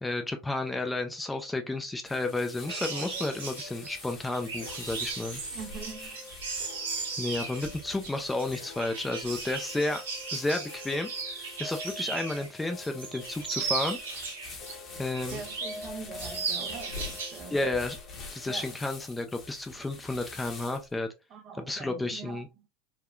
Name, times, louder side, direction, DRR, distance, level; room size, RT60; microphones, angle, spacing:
voice 1, 0.0-5.4 7.2-10.0 10.3-11.1 11.6-14.0 15.0-15.4 17.5-18.0 18.3-21.1 21.6-22.5, left 2 dB, 10° left, 0.5 m, -32 dB
sound 1, 2.0-21.0, left 4 dB, 40° left, 1.1 m, -46 dB
sound 2, 2.6-19.7, left 2 dB, 65° left, 1.1 m, -49 dB
sound 3, 2.7-12.5 12.8-14.7 15.1-15.9 16.2-17.4 17.7-17.9, right 5 dB, 80° right, 0.8 m, -37 dB
voice 2, 5.5-6.2 15.3-17.6 18.5-18.7 21.3-22.4, right 5 dB, 40° right, 0.7 m, -43 dB
3.6 x 2.2 x 2.4 m
hypercardioid pair, 90°, 0 cm